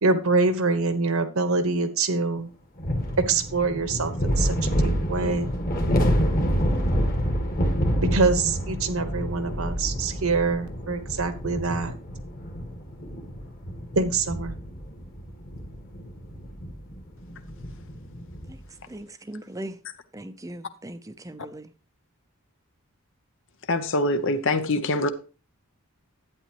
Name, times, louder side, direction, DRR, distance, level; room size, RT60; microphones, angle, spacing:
voice 1, 0.0-2.5 3.3-5.5 8.1-11.9 13.9-14.5, right 3 dB, 70° right, 1.2 m, -25 dB
sound 1, 2.8-18.6, equal, 40° left, 1.7 m, -28 dB
voice 2, 18.9-19.8 20.1-21.7, right 1 dB, 15° right, 0.6 m, -39 dB
voice 3, 23.7-25.1, left 2 dB, 60° left, 0.8 m, -24 dB
11.0 x 9.0 x 3.0 m
head